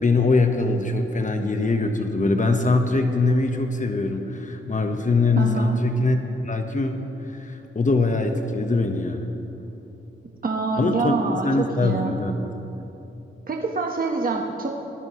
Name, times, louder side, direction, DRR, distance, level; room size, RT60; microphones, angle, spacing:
voice 1, 0.0-6.2 6.4-7.0 7.3-9.3 10.8-12.3, left 3 dB, 35° left, 5 dB, 1.3 m, -22 dB
voice 2, 5.4-5.8 10.4-12.1 13.5-14.7, right 3 dB, 45° right, 1 dB, 1.3 m, -26 dB
19.5 x 15.0 x 3.2 m, 3.0 s
cardioid pair, 55°, 21 cm